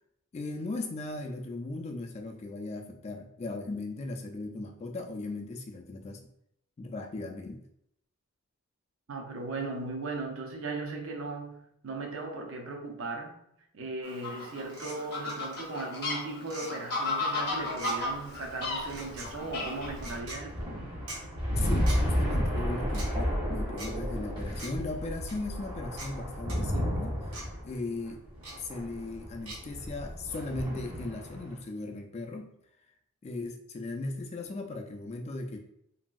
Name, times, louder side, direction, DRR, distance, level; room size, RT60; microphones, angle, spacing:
voice 1, 0.3-6.2 6.8-7.6 21.6-27.2 27.6-28.2 28.6-32.5 33.2-35.6, left 2 dB, 30° left, 0.3 m, -37 dB
voice 2, 9.1-13.4 13.7-20.8, right 3 dB, 65° right, 0.5 m, -37 dB
Fowl, 14.0-20.2, left 2 dB, 50° left, 0.7 m, -34 dB
sound 1, 14.7-15.0 15.3-15.6 16.4-16.7 17.7-18.0 18.8-19.3 20.0-20.4 21.1-21.2 21.9-22.0 22.9-23.1 23.8-23.9 24.6-24.7 25.3-25.4 26.0-26.1 26.5-26.6 27.3-27.4 28.4-28.5 29.5-29.6, right 2 dB, 80° right, 1.0 m, -41 dB
sound 2, 17.9-31.5, equal, 20° right, 0.7 m, -33 dB
2.9 x 2.6 x 2.3 m
head